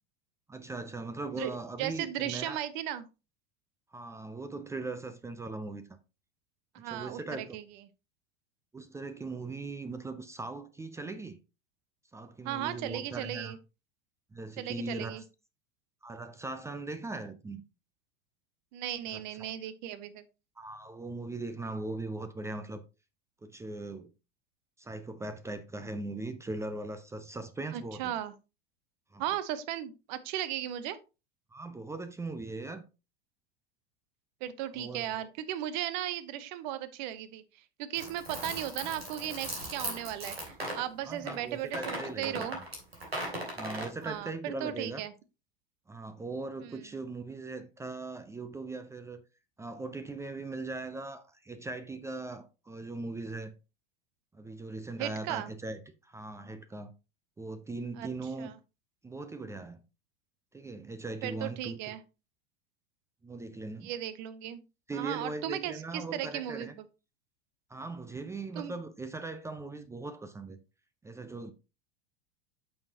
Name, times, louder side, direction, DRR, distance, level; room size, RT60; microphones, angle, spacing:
voice 1, 0.5-2.6 3.9-6.0 6.8-7.6 8.7-11.4 12.1-13.5 14.3-15.2 16.0-17.6 19.1-19.5 20.6-22.8 23.4-24.1 24.8-28.1 29.1-29.2 31.5-32.8 34.7-35.2 41.0-42.5 43.6-45.0 45.9-49.2 49.6-53.5 54.3-56.9 57.4-58.5 59.0-59.8 60.5-61.9 63.2-63.9 64.9-66.8 67.7-70.6 71.0-71.5, right 3 dB, 10° right, 0.6 m, -39 dB
voice 2, 1.3-3.1 6.7-7.6 12.4-13.6 14.6-15.2 18.7-20.2 27.7-28.3 29.2-31.0 34.4-37.4 37.8-42.6 44.0-45.1 46.6-46.8 55.0-55.5 58.0-58.1 58.4-58.5 61.2-62.0 63.8-64.6 64.9-66.7 68.5-68.7, right 11 dB, 50° right, 0.9 m, -36 dB
sound 1, 38.0-40.8 41.3-41.4 41.7-43.9, right 1 dB, 85° right, 2.8 m, -37 dB
8.6 x 6.4 x 2.8 m
figure-of-eight pair, 85°, 30 cm